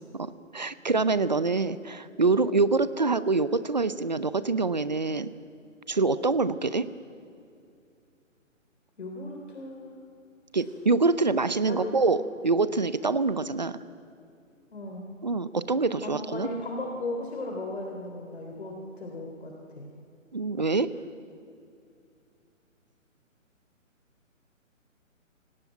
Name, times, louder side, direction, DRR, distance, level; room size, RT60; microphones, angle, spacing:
voice 1, 0.2-5.3 5.9-6.8 10.5-13.8 15.2-16.5 20.3-20.9, right 3 dB, 35° right, 14 dB, 0.6 m, -25 dB
voice 2, 9.0-9.9 11.7-11.9 14.7-15.0 16.0-19.9, left 2 dB, 50° left, 2 dB, 3.3 m, -36 dB
25.0 x 17.5 x 9.2 m, 2.4 s
hypercardioid pair, 170°, 40 cm